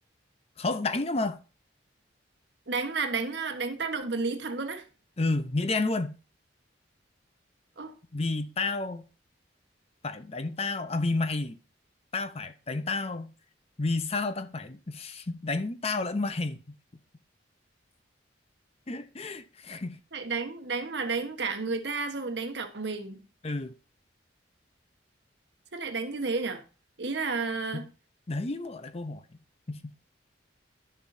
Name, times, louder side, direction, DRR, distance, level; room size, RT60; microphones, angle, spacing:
voice 1, 0.6-1.4 5.2-6.2 8.1-9.0 10.0-11.6 12.1-13.3 13.8-16.7 18.9-20.0 23.4-23.8 27.7-27.9 28.3-29.2 29.7-29.9, left 3 dB, 35° left, 0.7 m, -31 dB
voice 2, 2.7-4.9 7.8-7.9 20.1-23.2 25.7-26.6 27.0-27.9, right 4 dB, 65° right, 1.2 m, -31 dB
11.0 x 7.1 x 2.7 m
head